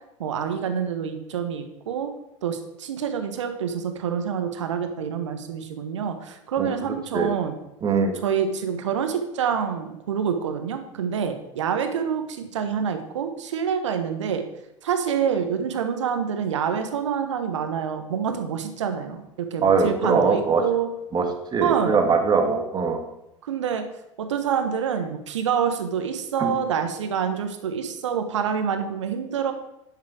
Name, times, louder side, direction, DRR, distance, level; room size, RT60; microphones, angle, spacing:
voice 1, 0.2-2.1 2.4-7.5 8.2-14.5 14.8-20.9 21.6-22.0 23.4-23.9 24.2-29.5, right 7 dB, 70° right, 7 dB, 1.3 m, -27 dB
voice 2, 6.6-7.3 7.8-8.2 19.6-20.6 21.1-21.3 21.5-23.0 26.4-26.5, right 5 dB, 25° right, 3 dB, 2.0 m, -22 dB
10.5 x 7.4 x 4.9 m, 0.90 s
figure-of-eight pair, 80°, 16 cm